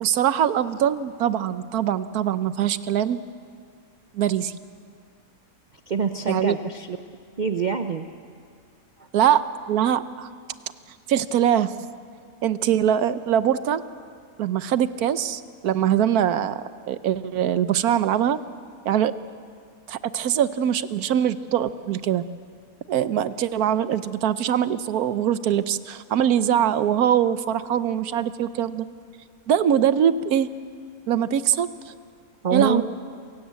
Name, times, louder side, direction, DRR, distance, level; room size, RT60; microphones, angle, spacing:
voice 1, 0.0-3.2 4.1-4.5 6.3-6.5 9.1-9.4 9.7-10.3 11.1-11.7 12.4-13.8 14.4-18.4 18.9-19.1 19.9-22.2 22.9-28.9 29.5-30.5 31.1-31.7 32.5-32.8, right 10 dB, 85° right, 14 dB, 1.3 m, -22 dB
voice 2, 5.9-7.0 7.4-8.1 32.4-32.8, right 5 dB, 45° right, 8 dB, 0.6 m, -25 dB
27.5 x 16.5 x 8.2 m, 2.2 s
omnidirectional pair, 1.6 m